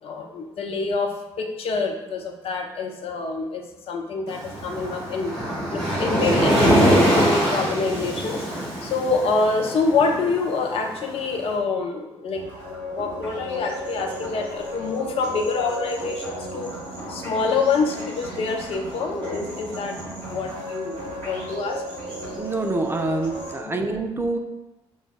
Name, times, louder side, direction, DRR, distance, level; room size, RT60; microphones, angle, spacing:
voice 1, 0.0-5.4 5.7-8.4 8.8-12.4 12.7-16.7 17.1-21.0 21.2-21.8 23.6-23.8, left 4 dB, 45° left, 3 dB, 0.5 m, -26 dB
Waves surf, 4.3-11.4, equal, 50° right, 1.4 m, -23 dB
sound 1, 12.3-23.5, equal, 70° right, 1.3 m, -34 dB
voice 2, 22.3-24.4, right 2 dB, 15° right, 4 dB, 0.4 m, -26 dB
5.3 x 2.2 x 2.4 m, 0.98 s
figure-of-eight pair, 40°, 14 cm